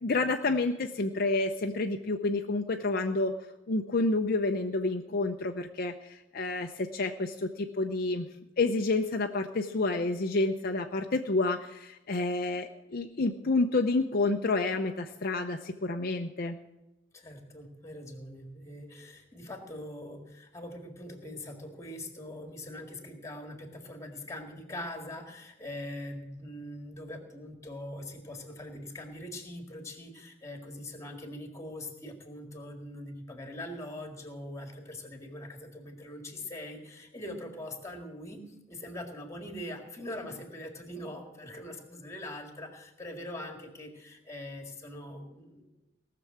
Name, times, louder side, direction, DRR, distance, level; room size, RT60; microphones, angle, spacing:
voice 1, 0.0-3.3 3.7-8.3 8.6-16.6, left 3 dB, 50° left, 5 dB, 0.6 m, -29 dB
voice 2, 17.1-38.4 38.7-45.7, left 1 dB, 15° left, 4 dB, 2.0 m, -42 dB
17.5 x 6.8 x 7.3 m, 0.98 s
head